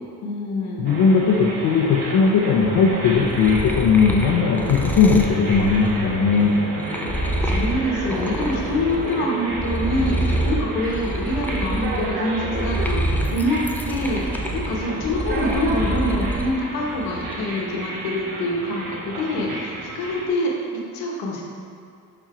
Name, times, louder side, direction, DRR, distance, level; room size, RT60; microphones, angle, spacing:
voice 1, 0.2-0.8 7.4-13.6 13.9-21.4, left 1 dB, 85° left, -2 dB, 1.5 m, -25 dB
voice 2, 0.8-6.5, left 5 dB, 65° left, -4 dB, 0.8 m, -18 dB
sound 1, 0.9-20.3, right 2 dB, 75° right, 1.4 m, -31 dB
sound 2, 2.9-9.2 9.5-16.5 16.9-17.6, right 1 dB, 5° left, 0.3 m, -27 dB
7.4 x 4.4 x 4.4 m, 2.5 s
cardioid pair, 140°, 36 cm